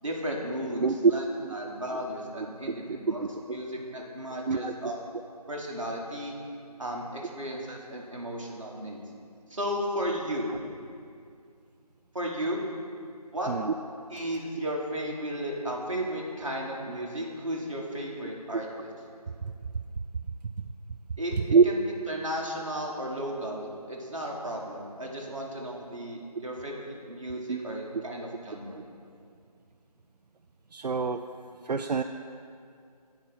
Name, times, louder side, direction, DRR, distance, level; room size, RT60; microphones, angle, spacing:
voice 1, 0.0-1.2 1.5-3.2 3.5-5.0 5.5-6.3 6.8-9.0 9.5-10.5 12.1-12.6 13.3-13.5 14.1-18.9 21.2-21.3 21.6-21.8 22.1-28.8, equal, 50° right, -2 dB, 1.4 m, -34 dB
voice 2, 0.8-1.1 1.4-1.5 2.4-3.3 4.5-4.7 10.5-10.6 13.5-13.7 19.4-19.5 20.4-20.7 21.5-21.6 27.5-27.6 30.7-31.2 31.6-32.0, right 5 dB, 85° right, 7 dB, 0.4 m, -25 dB
8.8 x 4.8 x 6.1 m, 2.3 s
figure-of-eight pair, 175°, 21 cm